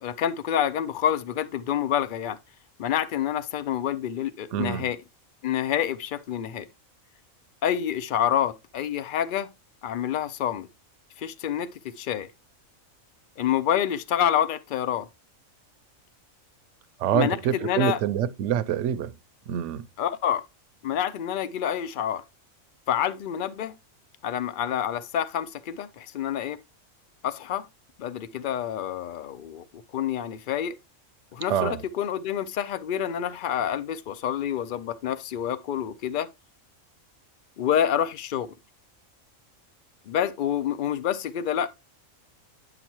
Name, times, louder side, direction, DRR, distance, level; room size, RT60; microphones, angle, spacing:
voice 1, 0.0-2.4 2.8-5.0 5.4-6.7 7.6-9.5 9.8-10.7 11.2-12.3 13.4-15.1 17.1-18.0 20.0-20.4 20.8-22.2 22.9-23.7 24.2-26.6 27.2-27.7 28.0-29.6 29.9-30.7 31.3-36.3 37.6-38.5 40.1-41.7, left 10 dB, 90° left, 0.4 m, -27 dB
voice 2, 4.5-4.9 17.0-19.1 19.5-19.8 31.5-31.8, right 9 dB, 70° right, 0.8 m, -26 dB
9.2 x 5.9 x 2.9 m
omnidirectional pair, 1.4 m